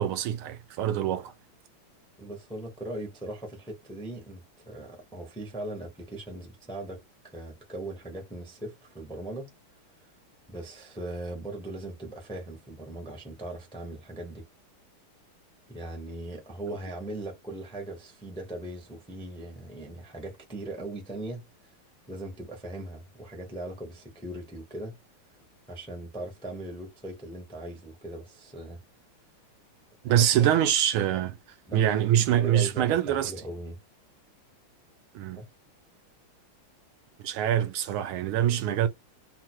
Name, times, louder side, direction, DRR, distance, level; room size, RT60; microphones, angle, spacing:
voice 1, 0.0-1.3 30.0-31.4 31.7-33.3 35.1-35.4 37.2-38.9, right 10 dB, 85° right, 1.5 m, -24 dB
voice 2, 2.2-9.5 10.0-10.1 10.5-14.5 15.7-21.7 22.1-25.0 25.7-28.8 30.0-30.3 31.6-33.8 35.3-35.5, right 2 dB, 5° left, 0.4 m, -39 dB
3.7 x 2.1 x 4.4 m
omnidirectional pair, 2.4 m